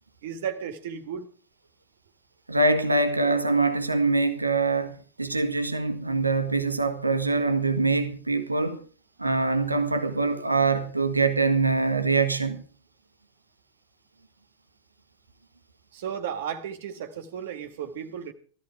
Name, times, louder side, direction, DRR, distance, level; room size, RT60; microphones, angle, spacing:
voice 1, 0.2-1.3 15.9-18.3, right 8 dB, 55° right, 1.9 m, -34 dB
voice 2, 2.5-8.8 9.2-12.6, right 3 dB, 85° right, 1.5 m, -24 dB
16.5 x 14.0 x 4.9 m
figure-of-eight pair, 90°, 0 cm